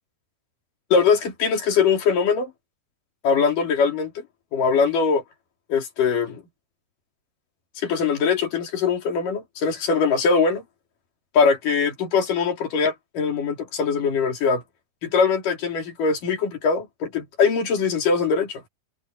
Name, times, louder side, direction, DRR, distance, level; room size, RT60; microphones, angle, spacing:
voice 1, 0.9-2.5 3.2-4.2 4.5-5.2 5.7-6.4 7.8-10.6 11.3-14.6 15.0-18.6, left 5 dB, 45° left, 4.8 m, -22 dB
omnidirectional pair, 5.5 m